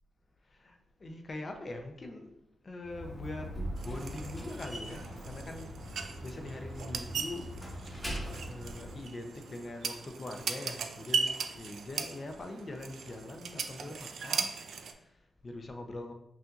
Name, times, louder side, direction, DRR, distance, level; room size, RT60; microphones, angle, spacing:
voice 1, 0.5-2.3 2.6-3.5 3.8-5.8 6.2-8.2 8.5-16.1, left 2 dB, 50° left, 4 dB, 0.7 m, -43 dB
Slam, 2.8-9.0, equal, 20° left, 1.4 m, -41 dB
sound 1, 3.8-14.9, right 5 dB, 75° right, 0.4 m, -38 dB
5.8 x 2.6 x 2.6 m, 0.79 s
supercardioid pair, 40°, 0 cm